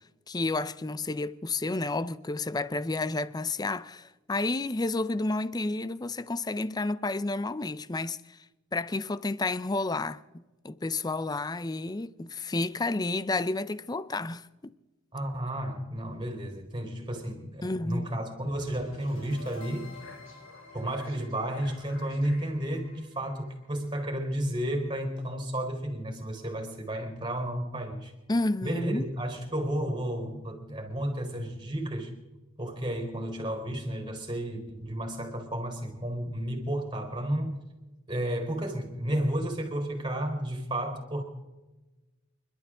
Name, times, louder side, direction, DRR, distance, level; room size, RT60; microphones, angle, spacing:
voice 1, 0.3-8.4 8.7-14.7 17.6-18.1 28.3-29.0, left 2 dB, 20° left, 0.5 m, -31 dB
voice 2, 15.1-19.9 20.7-28.1 28.6-32.1 32.6-37.6 38.1-41.2, right 1 dB, 20° right, 4.0 m, -32 dB
sound 1, 18.4-24.5, left 2 dB, 85° left, 5.5 m, -50 dB
29.5 x 12.0 x 3.7 m
head